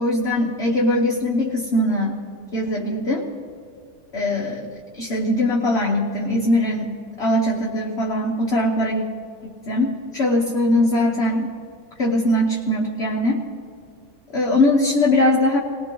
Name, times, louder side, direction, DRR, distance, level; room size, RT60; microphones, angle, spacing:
voice 1, 0.0-2.2 2.5-3.3 4.1-4.7 4.9-9.0 9.4-11.5 12.0-13.4 14.3-15.6, left 1 dB, 40° left, -1 dB, 1.2 m, -21 dB
19.5 x 19.0 x 3.8 m, 2.3 s
omnidirectional pair, 2.0 m